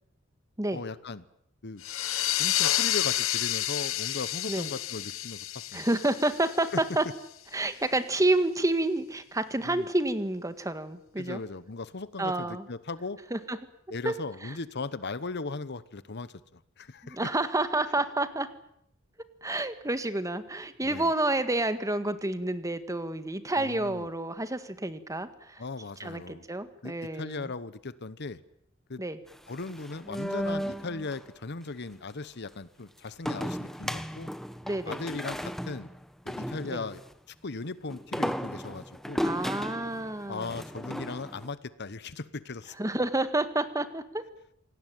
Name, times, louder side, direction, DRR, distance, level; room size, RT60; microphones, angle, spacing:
voice 1, 0.7-1.2 1.6-1.8 2.4-5.9 6.7-6.8 7.7-7.8 9.6-9.9 11.2-13.2 13.9-17.2 20.8-21.1 23.6-24.1 25.6-26.4 26.8-28.4 28.9-29.0 29.5-34.3 34.8-35.9 36.2-37.0 37.3-39.2 40.3-42.8, left 3 dB, 55° left, 16 dB, 1.0 m, -38 dB
sound 1, 1.8-7.1, left 13 dB, 80° left, 1.0 m, -30 dB
voice 2, 5.7-7.0 7.5-11.4 12.2-12.6 13.3-13.6 14.0-14.1 14.4-14.5 17.0-18.5 19.4-25.6 26.0-27.5 29.0-29.2 34.6-35.0 36.7-36.8 39.2-40.5 42.8-44.2, right 2 dB, 15° right, 11 dB, 1.7 m, -29 dB
sound 2, 29.3-31.2 33.2-37.1 37.9-41.5, equal, ahead, 1.2 m, -35 dB
27.0 x 18.5 x 9.2 m, 0.74 s
head